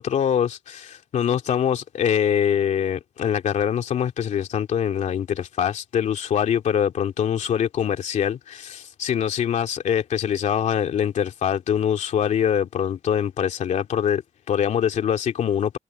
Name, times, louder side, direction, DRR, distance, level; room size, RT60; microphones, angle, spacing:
voice 1, 0.0-15.8, left 9 dB, 70° left, 2.7 m, -24 dB
wide cardioid pair, 170°, 13 cm